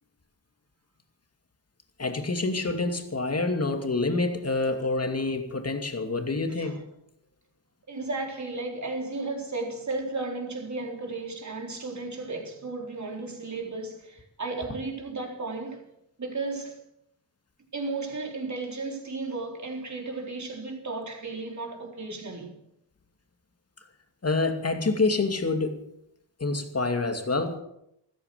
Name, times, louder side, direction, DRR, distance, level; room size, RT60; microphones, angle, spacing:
voice 1, 2.0-6.8 24.2-25.8 26.4-27.6, left 3 dB, 35° left, 2.6 m, -27 dB
voice 2, 7.9-15.9 16.2-16.8 17.7-22.5, right 3 dB, 40° right, 4.1 m, -34 dB
14.5 x 14.0 x 6.9 m
wide cardioid pair, 95°, 45 cm